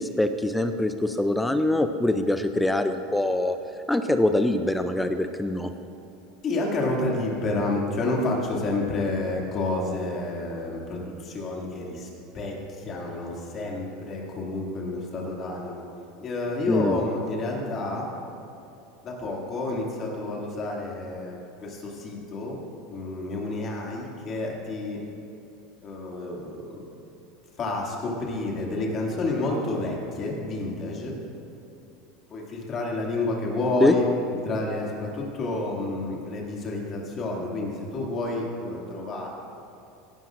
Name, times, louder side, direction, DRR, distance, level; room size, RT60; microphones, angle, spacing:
voice 1, 0.0-3.6 3.9-5.7 16.7-17.0 33.8-33.9, left 1 dB, 5° left, 8 dB, 0.4 m, -23 dB
voice 2, 6.4-12.1 12.3-15.9 16.2-18.1 19.0-22.6 22.9-25.0 25.8-26.8 27.6-31.2 32.3-34.0 34.4-39.3, left 2 dB, 35° left, -2 dB, 2.2 m, -29 dB
16.5 x 12.0 x 2.5 m, 2.6 s
supercardioid pair, 145°, 0 cm